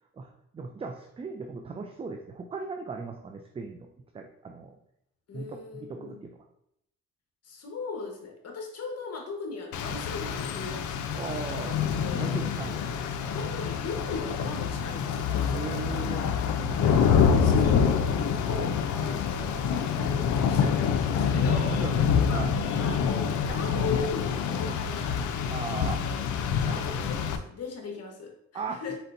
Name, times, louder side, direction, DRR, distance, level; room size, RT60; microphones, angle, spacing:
voice 1, 0.1-3.9 4.1-4.8 5.3-6.4 11.1-12.8 15.5-16.3 21.7-21.9 22.3-22.5 24.7-24.8 25.5-26.0 26.6-27.1 28.5-28.8, right 4 dB, 20° right, 4 dB, 0.4 m, -38 dB
voice 2, 5.3-6.2 7.4-11.6 12.0-12.3 13.3-15.8 16.8-18.0 18.4-21.8 22.2-22.4 22.7-25.7 26.0-26.2 26.7-29.0, left 4 dB, 55° left, 2 dB, 1.2 m, -38 dB
Rain, 9.7-27.4, left 7 dB, 75° left, 0.5 m, -26 dB
4.2 x 4.1 x 2.6 m, 0.78 s
cardioid pair, 90°, 30 cm